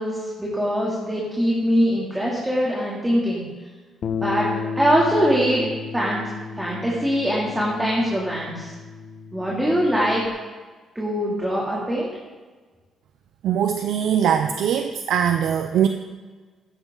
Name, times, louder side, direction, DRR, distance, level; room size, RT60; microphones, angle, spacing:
voice 1, 0.0-3.4 4.2-4.5 4.8-5.7 5.9-6.2 6.6-8.7 9.3-10.2 10.9-12.1, equal, 10° right, -5 dB, 3.1 m, -22 dB
Bass guitar, 4.0-10.3, left 5 dB, 60° left, 1.1 m, -33 dB
voice 2, 13.4-15.9, right 9 dB, 75° right, 7 dB, 0.6 m, -21 dB
15.0 x 12.0 x 4.0 m, 1.4 s
cardioid pair, 90°, 0 cm